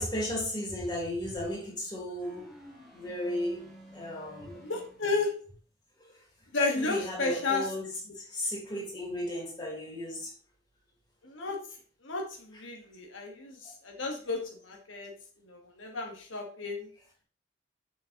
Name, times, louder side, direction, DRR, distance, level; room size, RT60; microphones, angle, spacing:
voice 1, 0.0-2.5 2.9-3.6 3.9-4.6 6.0-6.1 6.7-7.9 8.1-10.3, left 1 dB, 20° left, -2 dB, 2.5 m, -35 dB
sound 1, 2.2-5.3, left 1 dB, ahead, 1.7 m, -51 dB
voice 2, 4.6-5.4 6.5-7.6 11.2-11.6 12.0-15.1 15.5-16.9, left 3 dB, 80° left, 1 dB, 1.3 m, -32 dB
6.8 x 6.3 x 2.8 m, 0.43 s
head